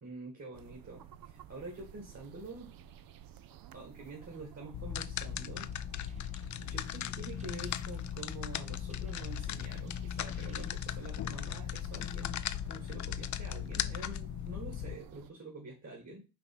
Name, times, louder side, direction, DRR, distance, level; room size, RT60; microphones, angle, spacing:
voice 1, 0.0-2.7 3.7-5.7 6.0-6.3 6.6-12.4 12.6-16.3, right 2 dB, 45° right, -1 dB, 2.1 m, -47 dB
sound 1, 0.5-15.3, right 10 dB, 65° right, 0.5 m, -54 dB
sound 2, 4.7-15.0, left 10 dB, 50° left, 0.4 m, -38 dB
sound 3, 5.0-10.7, right 4 dB, 20° right, 0.7 m, -59 dB
5.9 x 2.9 x 5.5 m, 0.30 s
cardioid pair, 60°, 38 cm